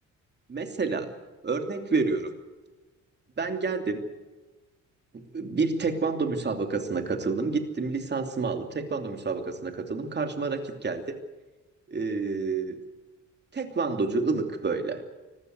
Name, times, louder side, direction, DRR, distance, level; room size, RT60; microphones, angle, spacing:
voice 1, 0.5-1.1 1.4-2.3 3.4-4.0 5.1-11.0 11.9-12.8 13.5-15.0, right 4 dB, 35° right, 5 dB, 2.9 m, -29 dB
25.0 x 15.5 x 8.1 m, 1.2 s
cardioid pair, 90°, 30 cm